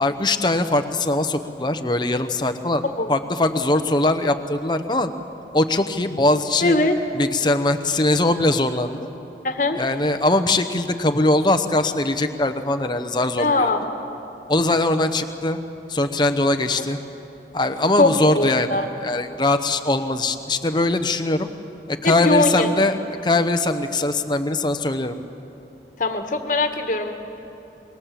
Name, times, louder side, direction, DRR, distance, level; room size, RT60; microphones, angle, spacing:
voice 1, 0.0-2.8 3.1-5.1 5.5-6.8 7.1-9.0 9.8-13.7 14.5-15.6 15.9-17.0 17.5-21.5 21.9-25.1, left 2 dB, 25° left, 8 dB, 0.9 m, -21 dB
voice 2, 6.6-7.0 9.4-9.8 13.4-13.8 18.0-18.9 22.0-22.7 26.0-27.1, left 2 dB, 45° left, 6 dB, 1.6 m, -21 dB
25.5 x 21.0 x 7.5 m, 2.9 s
head